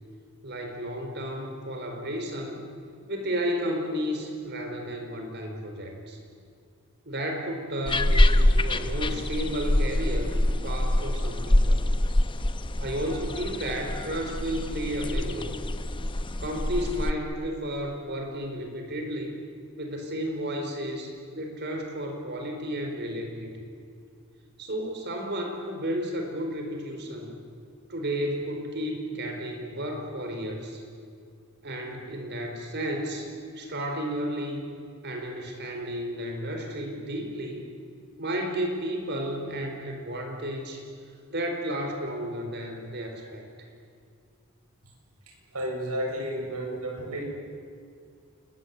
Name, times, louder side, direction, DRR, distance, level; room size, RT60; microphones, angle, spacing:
voice 1, 0.4-2.6 3.1-6.2 7.1-10.3 10.6-11.9 12.8-15.6 16.4-19.3 19.8-23.5 24.6-27.3 27.9-30.8 31.6-33.3 33.5-34.7 35.0-37.6 38.2-40.8 41.3-43.4, equal, 50° right, 3 dB, 4.5 m, -32 dB
sound 1, 7.9-17.1, left 1 dB, 20° left, 0.8 m, -25 dB
voice 2, 45.5-47.2, right 1 dB, 85° right, 1 dB, 7.0 m, -32 dB
29.0 x 21.5 x 8.4 m, 2.3 s
head